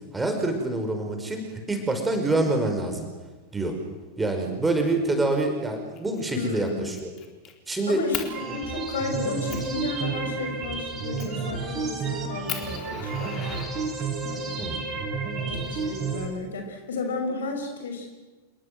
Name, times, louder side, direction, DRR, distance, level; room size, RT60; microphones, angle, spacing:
voice 1, 0.1-3.1 3.5-3.8 4.2-7.1 7.7-8.0 14.6-14.9, right 2 dB, 10° right, 4 dB, 5.5 m, -26 dB
Fire, 5.9-6.2 6.6-7.5 8.1-8.3 8.9-9.0 9.5-9.7 11.2-11.5 11.9-12.0 12.5-14.3 15.3-16.3, left 10 dB, 35° left, 4.0 m, -37 dB
voice 2, 6.3-6.9 7.9-13.7 14.3-14.7 15.5-18.1, left 3 dB, 65° left, 5 dB, 6.0 m, -33 dB
sound 1, 8.3-16.3, right 4 dB, 25° right, 7.4 m, -31 dB
28.0 x 22.0 x 7.9 m, 1.2 s
figure-of-eight pair, 90°, 0 cm